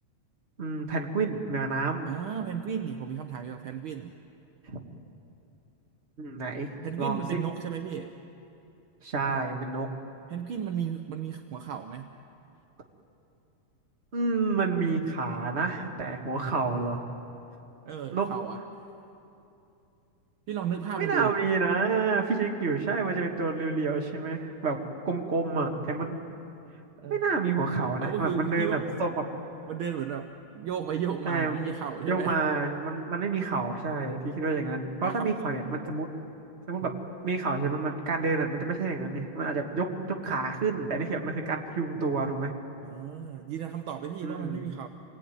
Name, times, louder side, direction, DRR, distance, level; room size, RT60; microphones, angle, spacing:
voice 1, 0.6-2.1 4.7-4.8 6.2-7.4 9.0-9.9 14.1-17.0 18.1-18.3 20.9-24.8 25.1-26.2 27.1-29.2 31.3-31.5 32.1-36.1 36.7-36.9 37.2-42.5 44.2-44.6, right 4 dB, 25° right, 2 dB, 1.7 m, -29 dB
voice 2, 2.1-4.1 6.8-8.1 10.3-12.1 17.9-18.6 20.5-21.3 27.0-27.2 28.0-28.9 29.7-32.4 35.0-35.3 36.8-37.0 42.8-44.9, right 8 dB, 70° right, 6 dB, 1.2 m, -34 dB
27.5 x 20.0 x 9.4 m, 2.8 s
omnidirectional pair, 3.3 m